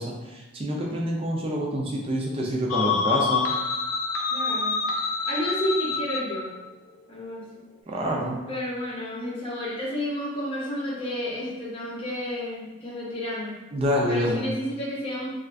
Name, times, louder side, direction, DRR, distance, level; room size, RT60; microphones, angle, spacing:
voice 1, 0.0-3.4 7.9-8.4 13.7-14.5, equal, 25° right, -2 dB, 0.4 m, -27 dB
sound 1, 2.7-6.4, left 5 dB, 90° left, 0.4 m, -26 dB
voice 2, 4.3-4.8 5.3-6.5 7.1-7.4 8.5-13.6 14.1-15.3, left 1 dB, 25° left, -7 dB, 0.7 m, -31 dB
2.4 x 2.4 x 3.3 m, 1.1 s
head